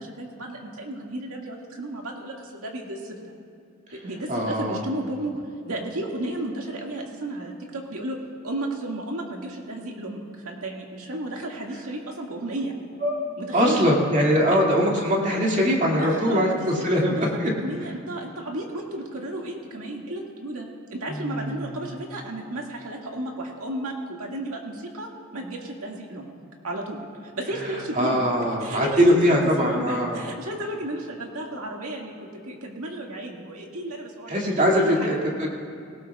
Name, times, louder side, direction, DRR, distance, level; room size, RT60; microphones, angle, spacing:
voice 1, 0.0-3.3 3.9-5.3 5.6-8.2 8.4-12.7 13.4-13.9 16.0-26.3 26.6-28.2 28.6-29.4 29.6-32.1 32.5-35.2, right 1 dB, 90° right, 0 dB, 2.0 m, -33 dB
voice 2, 4.3-4.8 13.0-13.2 13.5-17.5 17.8-17.9 21.1-22.0 27.5-30.2 34.3-35.5, equal, 35° right, -2 dB, 2.3 m, -22 dB
19.0 x 18.0 x 2.4 m, 2.5 s
head